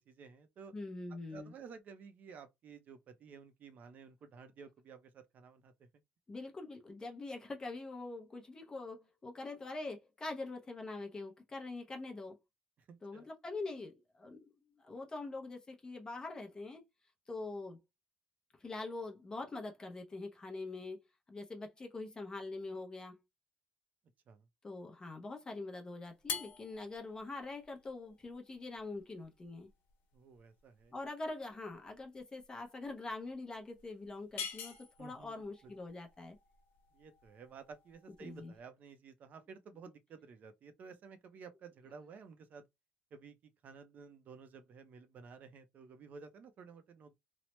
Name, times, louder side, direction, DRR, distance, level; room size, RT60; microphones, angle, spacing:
voice 1, 0.0-0.7 1.1-5.9 12.9-13.3 24.3-24.5 30.1-30.9 35.0-35.4 35.6-35.7 36.9-42.7 43.1-47.1, right 5 dB, 45° right, 0.5 m, -53 dB
voice 2, 0.7-1.5 6.3-12.4 13.0-16.8 17.3-17.8 18.6-21.0 21.3-23.2 24.6-29.7 30.9-36.4 38.2-38.5, left 3 dB, 20° left, 0.6 m, -44 dB
sound 1, 26.2-38.6, left 7 dB, 70° left, 0.9 m, -48 dB
3.0 x 2.0 x 3.0 m
cardioid pair, 140°, 4 cm